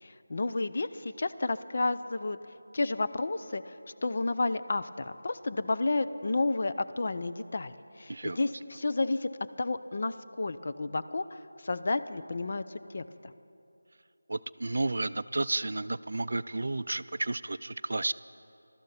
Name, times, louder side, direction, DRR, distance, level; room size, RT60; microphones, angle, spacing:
voice 1, 0.0-2.4 2.7-9.3 9.6-12.6 12.9-13.3, left 3 dB, 45° left, 11 dB, 0.5 m, -31 dB
voice 2, 14.3-18.1, right 2 dB, 65° right, 16 dB, 0.3 m, -32 dB
20.5 x 13.0 x 4.2 m, 2.7 s
figure-of-eight pair, 170°, 0 cm